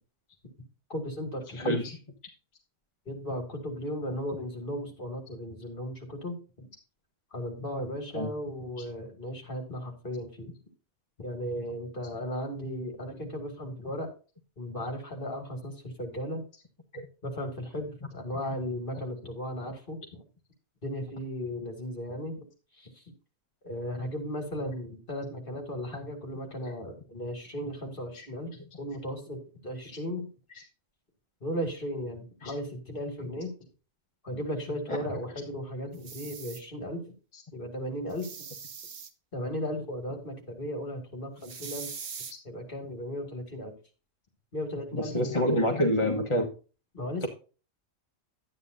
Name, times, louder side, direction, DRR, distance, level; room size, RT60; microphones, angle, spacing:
voice 1, 0.9-1.9 3.1-6.7 7.3-10.5 11.2-14.1 14.6-16.4 17.2-20.2 20.8-22.4 22.8-23.0 23.6-30.3 31.4-33.5 34.2-37.1 37.5-38.3 39.3-41.9 42.4-43.7 44.5-45.6 46.9-47.3, equal, 40° left, 3 dB, 2.6 m, -36 dB
voice 2, 1.6-1.9 8.1-8.3 16.9-17.0 28.1-28.3 32.4-32.5 34.9-35.0 44.9-46.5 47.2-47.3, equal, 25° left, 1 dB, 1.2 m, -27 dB
sound 1, 35.9-36.6 38.1-39.1 41.4-42.3, right 6 dB, 55° right, 1.2 m, -41 dB
11.5 x 9.6 x 2.6 m, 0.35 s
omnidirectional pair, 1.4 m